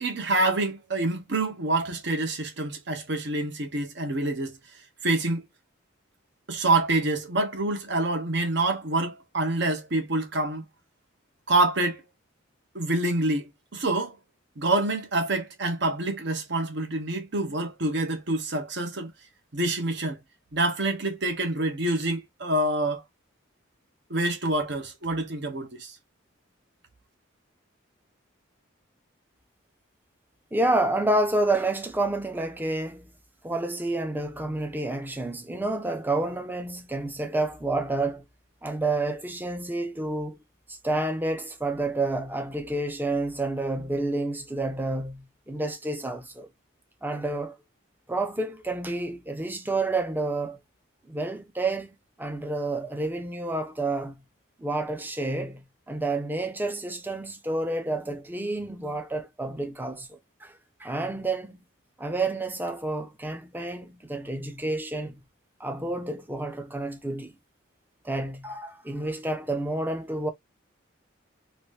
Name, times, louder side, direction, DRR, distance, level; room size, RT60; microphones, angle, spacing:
voice 1, 0.0-4.6 5.0-5.4 6.5-10.7 11.5-12.0 12.7-14.1 14.6-19.1 19.5-20.2 20.5-23.0 24.1-25.9, right 2 dB, 60° right, 0.9 m, -26 dB
voice 2, 30.5-33.1 33.4-38.2 38.6-40.4 40.7-46.5 47.0-47.6 48.1-50.6 51.1-54.2 54.6-61.6 62.0-65.1 65.6-67.3 68.0-70.3, right 2 dB, 10° right, 0.5 m, -29 dB
3.0 x 2.6 x 3.1 m
head